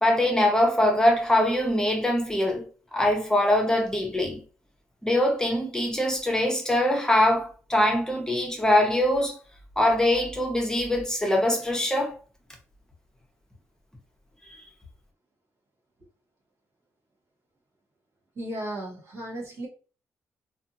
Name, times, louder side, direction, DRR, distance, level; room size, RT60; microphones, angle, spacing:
voice 1, 0.0-2.6 2.9-4.4 5.0-9.4 9.8-12.1, left 1 dB, 10° left, 0.9 m, -23 dB
voice 2, 18.3-19.7, right 1 dB, 65° right, 1.5 m, -35 dB
2.6 x 2.5 x 2.7 m
cardioid pair, 65°, 6 cm